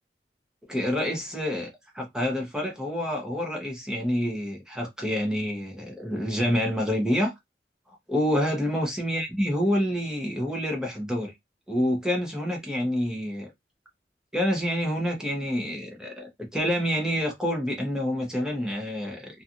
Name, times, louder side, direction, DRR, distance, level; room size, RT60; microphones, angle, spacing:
voice 1, 0.7-1.7 1.9-7.3 8.1-11.3 11.7-13.5 14.3-19.4, equal, 5° right, 0.7 m, -27 dB
2.7 x 2.3 x 2.5 m
head